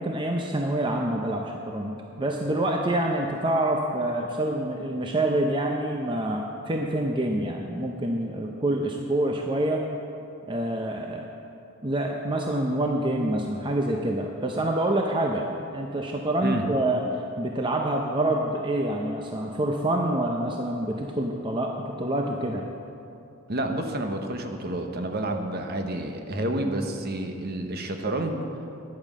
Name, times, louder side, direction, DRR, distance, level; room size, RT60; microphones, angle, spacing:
voice 1, 0.0-9.8 10.5-11.3 11.8-15.5 15.7-22.6, right 1 dB, 20° right, 1 dB, 0.6 m, -27 dB
voice 2, 23.5-28.4, right 1 dB, 45° right, 5 dB, 1.0 m, -29 dB
10.5 x 8.9 x 7.4 m, 2.7 s
head